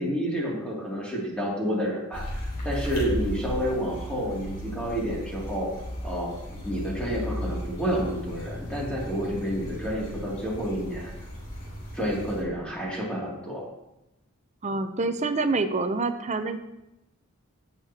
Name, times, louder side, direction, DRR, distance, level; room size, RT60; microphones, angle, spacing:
voice 1, 0.0-2.3 2.6-5.7 6.0-11.1 11.9-13.7, equal, 5° left, -5 dB, 2.6 m, -29 dB
sound 1, 2.1-12.4, equal, 40° left, 3.6 m, -35 dB
voice 2, 14.6-16.6, right 3 dB, 30° right, 9 dB, 0.6 m, -26 dB
16.0 x 6.6 x 2.9 m, 0.92 s
head